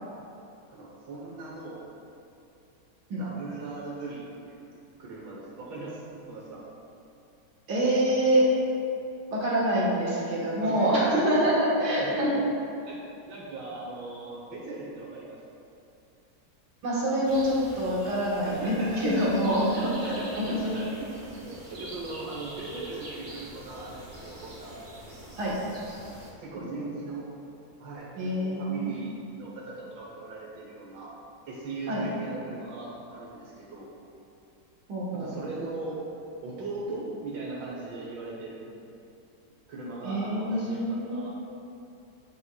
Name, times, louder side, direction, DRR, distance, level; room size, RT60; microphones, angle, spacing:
voice 1, 0.7-1.8 3.2-4.6 5.0-6.0 6.3-6.7 10.6-11.5 11.8-12.4 12.8-15.4 18.4-19.3 19.6-21.1 21.4-24.8 26.4-27.2 27.8-31.1 31.5-33.9 35.1-36.0 36.4-38.7 39.7-41.3, right 3 dB, 90° right, -5 dB, 1.6 m, -39 dB
voice 2, 7.7-8.4 9.3-12.4 16.8-20.7 25.4-25.6 26.6-26.7 28.2-28.9 31.9-32.0 34.9-35.3 40.0-41.3, right 1 dB, 65° right, -7 dB, 1.9 m, -26 dB
sound 1, 17.2-26.3, right 1 dB, 30° right, 0.6 m, -44 dB
7.1 x 6.1 x 2.2 m, 2.7 s
omnidirectional pair, 1.9 m